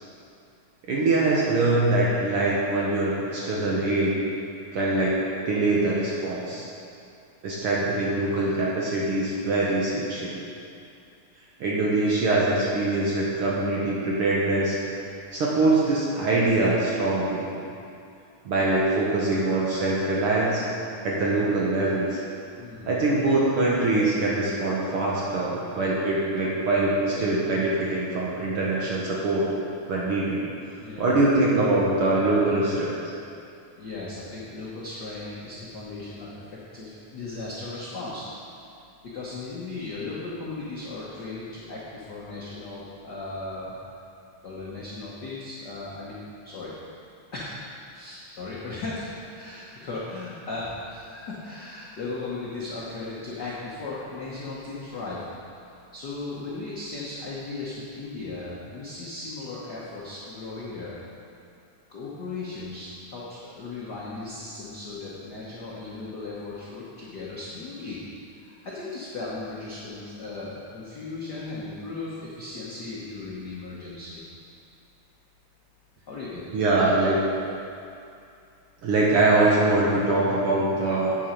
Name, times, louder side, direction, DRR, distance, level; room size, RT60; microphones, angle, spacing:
voice 1, 0.9-4.2 4.7-5.2 5.4-6.7 7.4-10.4 11.6-14.8 15.3-17.5 18.4-20.6 21.0-22.2 22.8-29.5 29.9-30.5 31.0-32.9 76.5-77.2 78.8-81.2, right 2 dB, 60° right, -5 dB, 1.5 m, -23 dB
voice 2, 22.6-23.1 30.8-31.2 33.8-38.6 39.0-43.7 44.4-46.7 47.3-55.2 55.9-61.0 61.9-68.0 68.4-74.2 76.1-76.5, left 3 dB, 70° left, -7 dB, 1.0 m, -37 dB
8.6 x 7.3 x 5.2 m, 2.5 s
omnidirectional pair, 3.5 m